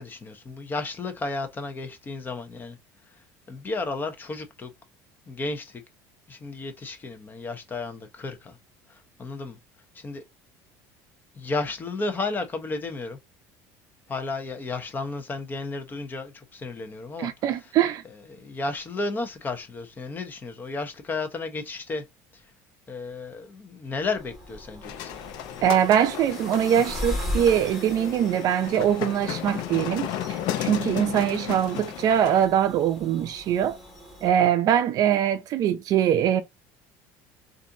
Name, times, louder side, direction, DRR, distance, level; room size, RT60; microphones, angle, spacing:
voice 1, 0.0-2.8 3.1-4.7 5.3-5.8 6.3-8.6 8.9-9.6 9.9-10.2 11.3-13.2 14.1-17.7 18.0-22.0 22.3-22.5 22.9-25.1, left 3 dB, 25° left, 0.9 m, -33 dB
voice 2, 17.2-18.0 25.6-30.1 30.6-33.8 34.2-36.4, right 10 dB, 50° right, 0.5 m, -22 dB
sound 1, 24.0-34.3, left 1 dB, ahead, 2.2 m, -38 dB
sound 2, 24.8-32.5, left 11 dB, 65° left, 0.7 m, -34 dB
4.1 x 2.6 x 2.6 m
supercardioid pair, 115°, 8 cm